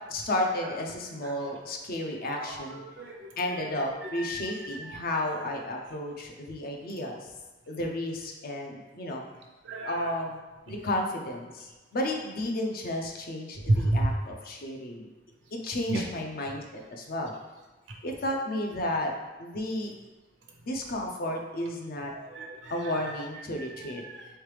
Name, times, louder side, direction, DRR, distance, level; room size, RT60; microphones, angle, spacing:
voice 1, 0.1-2.8 3.4-7.2 7.7-9.3 9.9-10.4 10.7-15.1 15.5-17.3 18.0-19.1 19.4-19.9 20.6-22.1 22.7-24.0, left 1 dB, 55° left, 1 dB, 0.5 m, -32 dB
voice 2, 1.2-1.6 2.2-3.3 3.9-5.1 9.6-10.1 13.7-14.1 15.9-16.0 17.9-18.0 22.1-23.2 23.8-24.3, right 1 dB, 70° right, 0 dB, 0.7 m, -32 dB
3.6 x 3.2 x 3.2 m, 1.2 s
head